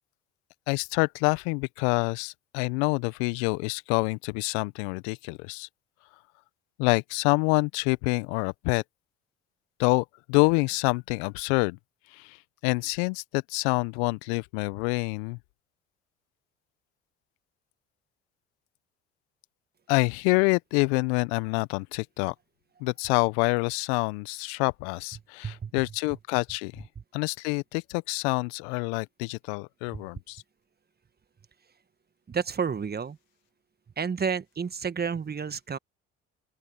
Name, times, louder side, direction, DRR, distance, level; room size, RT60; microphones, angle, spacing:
voice 1, 0.7-5.7 6.8-8.8 9.8-11.8 12.1-12.4 12.6-15.4 19.9-22.3 22.8-26.8 27.1-30.4, left 31 dB, 70° left, 1.3 m, -27 dB
voice 2, 32.3-33.2 34.0-35.8, right 6 dB, 30° right, 1.5 m, -30 dB
open air
hypercardioid pair, 55°, 34 cm